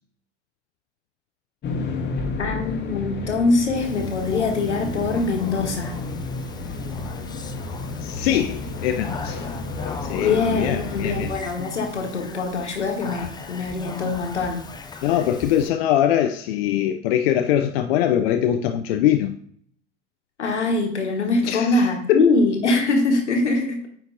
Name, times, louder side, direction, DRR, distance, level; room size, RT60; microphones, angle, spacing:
sound 1, 1.6-11.4, left 3 dB, 30° left, 1.2 m, -31 dB
voice 1, 2.4-5.9 10.2-14.6 20.4-23.8, left 3 dB, 80° left, 3 dB, 1.3 m, -23 dB
Speech, 3.8-15.7, left 4 dB, 10° left, 0.6 m, -38 dB
voice 2, 8.0-9.4 10.0-11.3 15.0-19.4 21.5-22.2, left 10 dB, 60° left, 6 dB, 0.5 m, -22 dB
9.3 x 4.5 x 2.6 m, 0.62 s
figure-of-eight pair, 75°, 34 cm